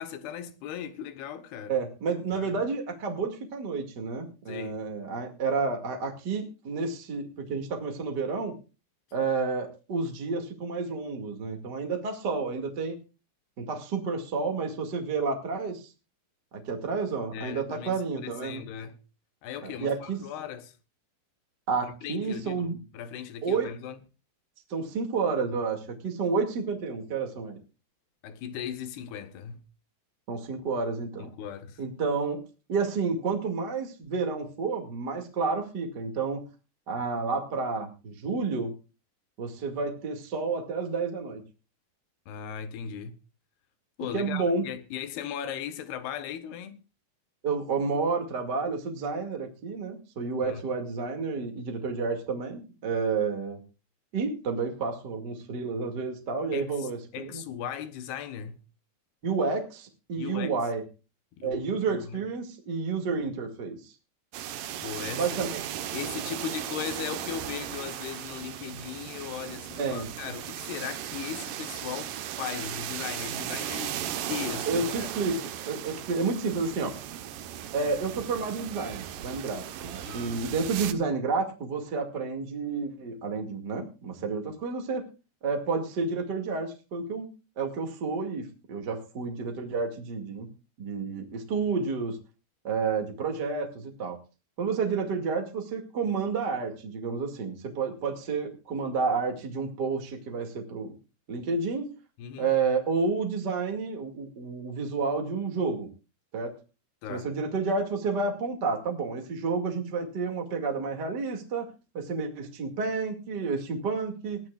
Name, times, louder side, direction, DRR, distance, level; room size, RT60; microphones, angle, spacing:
voice 1, 0.0-1.7 2.3-2.6 4.5-4.9 17.3-19.0 19.4-20.8 21.8-24.0 28.2-29.6 31.2-31.8 42.3-43.2 44.0-46.8 50.4-50.6 56.5-58.6 60.2-60.5 61.4-62.2 64.8-65.4 65.9-75.1 80.0-80.3 102.2-102.5 107.0-107.3, left 9 dB, 70° left, 3.1 m, -38 dB
voice 2, 1.7-8.6 9.1-13.0 13.6-15.9 16.5-18.6 19.6-20.2 21.7-22.8 23.4-23.7 24.7-27.6 30.3-31.3 31.8-32.4 32.7-36.4 36.9-38.7 39.4-41.4 44.1-44.7 47.4-53.6 54.1-57.4 59.2-60.8 61.4-63.9 65.1-65.6 69.8-70.1 74.7-76.9 77.7-85.1 85.4-87.3 87.6-90.5 90.8-92.2 92.6-94.2 94.6-101.0 101.3-101.9 102.4-105.9 106.3-106.5 107.1-111.7 111.9-114.4, right 4 dB, 35° right, 1.8 m, -30 dB
sound 1, 64.3-80.9, right 11 dB, 70° right, 2.1 m, -37 dB
20.0 x 13.5 x 2.4 m
omnidirectional pair, 5.1 m